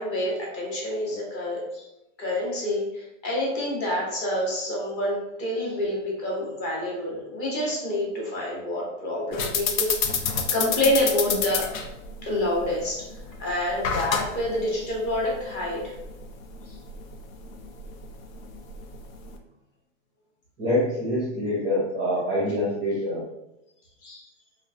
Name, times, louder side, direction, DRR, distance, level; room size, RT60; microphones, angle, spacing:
voice 1, 0.0-1.9 2.2-9.9 10.5-11.7 12.2-13.1 13.4-15.9 16.7-16.8 24.0-24.3, left 1 dB, 25° left, -4 dB, 0.7 m, -27 dB
sound 1, 9.3-19.4, left 6 dB, 90° left, 0.5 m, -30 dB
voice 2, 20.6-23.2, left 1 dB, 10° right, -9 dB, 0.4 m, -25 dB
3.0 x 2.0 x 2.4 m, 0.89 s
hypercardioid pair, 150°, 39 cm